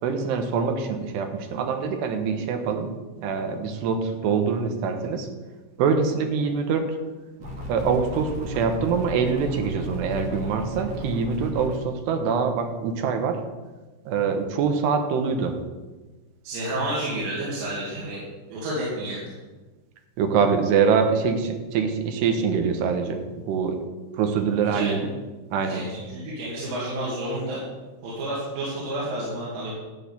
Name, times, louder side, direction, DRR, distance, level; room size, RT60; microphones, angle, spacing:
voice 1, 0.0-2.9 3.2-5.3 5.8-6.8 7.7-13.4 14.1-15.6 20.2-23.2 23.5-23.8 24.1-25.1 25.5-25.8, right 5 dB, 70° right, 6 dB, 2.9 m, -24 dB
sound 1, 7.4-11.8, equal, 45° right, 2.7 m, -35 dB
voice 2, 16.4-18.2 18.5-19.3 24.7-24.9 25.6-27.6 28.0-29.7, right 1 dB, 90° right, -7 dB, 5.0 m, -30 dB
13.0 x 4.9 x 8.3 m, 1.2 s
omnidirectional pair, 5.4 m